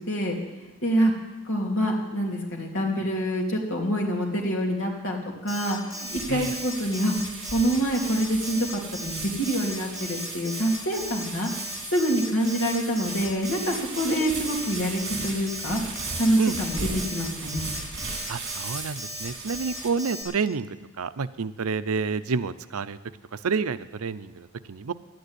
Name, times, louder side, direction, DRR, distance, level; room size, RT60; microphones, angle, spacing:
voice 1, 0.1-0.4 0.8-1.1 1.4-5.2 5.4-7.1 7.5-11.5 11.9-15.8 16.2-17.7, equal, 60° left, -1 dB, 3.0 m, -26 dB
Alarm, 5.5-20.2, equal, 15° left, 3.8 m, -37 dB
sound 1, 6.1-19.9, right 4 dB, 55° right, 3.0 m, -37 dB
voice 2, 18.3-23.0 23.3-24.9, right 5 dB, 80° right, 14 dB, 0.6 m, -29 dB
12.0 x 9.4 x 9.8 m, 1.1 s
head